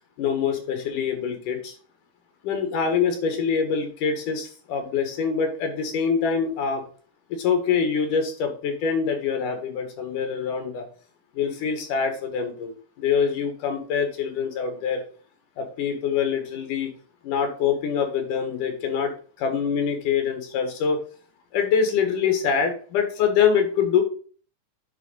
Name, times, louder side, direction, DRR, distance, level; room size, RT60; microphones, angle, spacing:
voice 1, 0.2-1.7 2.4-6.8 7.3-10.8 11.3-15.0 15.6-16.9 17.2-19.1 19.4-21.0 21.5-24.0, left 6 dB, 80° left, 5 dB, 3.2 m, -25 dB
10.0 x 4.0 x 4.0 m, 0.41 s
omnidirectional pair, 3.6 m